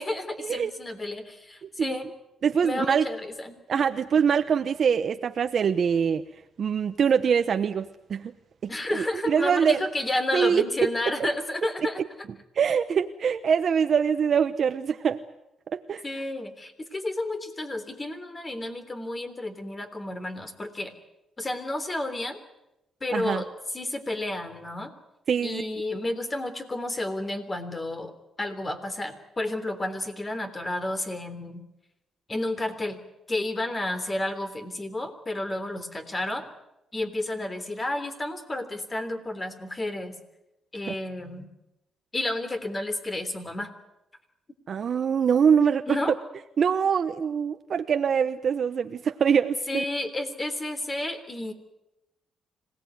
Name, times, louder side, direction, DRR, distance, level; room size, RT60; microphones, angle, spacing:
voice 1, 0.0-2.1 2.6-3.9 8.7-12.0 16.0-20.9 21.4-22.4 23.0-24.9 25.4-31.6 32.3-33.0 33.3-36.5 36.9-40.1 40.7-41.5 42.1-43.7 45.9-46.1 49.7-51.5, left 1 dB, 25° left, 9 dB, 3.4 m, -31 dB
voice 2, 1.6-2.0 2.4-3.1 3.7-6.2 6.6-8.3 8.6-9.8 10.3-10.7 12.6-15.2 15.7-16.0 23.1-23.4 25.3-25.7 40.9-41.0 44.7-45.9 46.6-49.8, right 7 dB, 55° right, 8 dB, 1.0 m, -24 dB
26.0 x 18.5 x 9.4 m, 0.92 s
cardioid pair, 95°, 0 cm